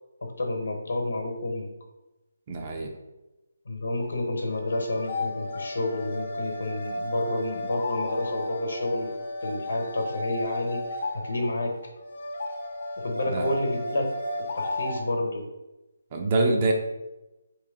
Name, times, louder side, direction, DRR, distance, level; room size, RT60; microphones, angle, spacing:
voice 1, 0.2-1.7 3.7-9.1 9.4-10.8 11.1-11.7 13.0-14.1 14.6-15.4, left 2 dB, 70° left, 3 dB, 0.9 m, -29 dB
voice 2, 2.5-2.9 13.3-13.5 16.1-16.7, right 2 dB, 30° right, 2 dB, 0.5 m, -25 dB
sound 1, 4.0-15.0, left 1 dB, 50° left, 0.6 m, -34 dB
3.3 x 3.1 x 3.6 m, 1.0 s
hypercardioid pair, 160°, 0 cm